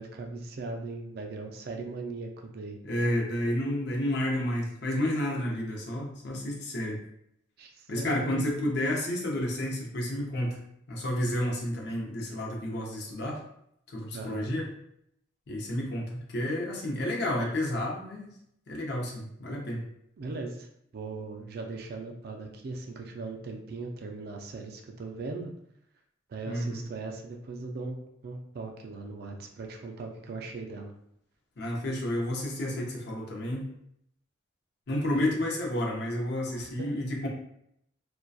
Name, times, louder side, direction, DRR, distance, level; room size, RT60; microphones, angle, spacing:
voice 1, 0.0-2.8 7.6-8.4 11.3-11.4 14.1-14.5 20.2-20.7 20.9-25.5 26.3-30.9 35.1-35.3 36.6-37.0, right 3 dB, 55° right, 3 dB, 0.3 m, -39 dB
voice 2, 2.8-7.0 7.9-13.4 13.9-14.7 15.5-18.3 18.7-19.8 26.5-26.8 31.6-33.7 34.9-37.3, left 1 dB, 55° left, -1 dB, 0.5 m, -31 dB
2.6 x 2.1 x 2.3 m, 0.74 s
head